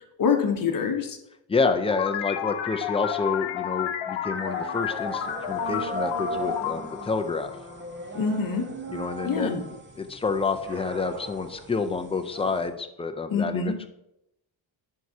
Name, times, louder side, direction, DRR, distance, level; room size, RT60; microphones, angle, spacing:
voice 1, 0.2-1.2 8.1-8.7 9.2-9.6 13.3-13.7, left 5 dB, 40° left, 5 dB, 1.0 m, -25 dB
voice 2, 1.5-7.6 8.9-9.5 10.0-13.9, left 4 dB, 15° left, 7 dB, 0.4 m, -28 dB
sound 1, 1.9-8.2, left 9 dB, 65° left, 0.9 m, -31 dB
sound 2, 4.3-12.7, right 2 dB, 20° right, 0.9 m, -37 dB
10.5 x 4.7 x 2.8 m, 0.83 s
cardioid pair, 115°, 49 cm